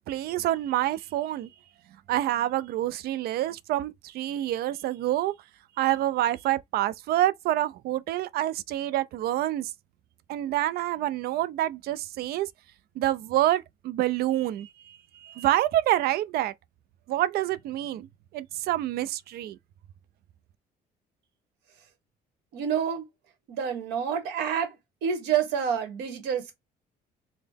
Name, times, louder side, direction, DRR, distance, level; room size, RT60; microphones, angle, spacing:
voice 1, 0.1-1.5 2.1-5.3 5.8-9.7 10.3-12.5 13.0-16.5 17.1-18.1 18.3-19.6, right 14 dB, 70° right, 0.4 m, -27 dB
voice 2, 22.5-23.1 23.5-24.8 25.0-26.6, right 8 dB, 85° right, 1.3 m, -28 dB
4.0 x 2.0 x 3.4 m
cardioid pair, 110°, 17 cm